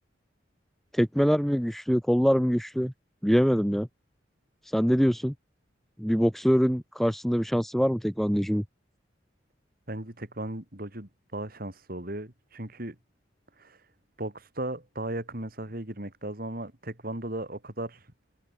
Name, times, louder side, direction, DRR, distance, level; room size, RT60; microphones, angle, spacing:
voice 1, 0.9-2.9 3.2-3.9 4.6-5.3 6.0-8.6, equal, ahead, 1.9 m, -24 dB
voice 2, 9.9-12.9 13.6-13.8 14.2-18.0, right 1 dB, 50° right, 3.2 m, -36 dB
head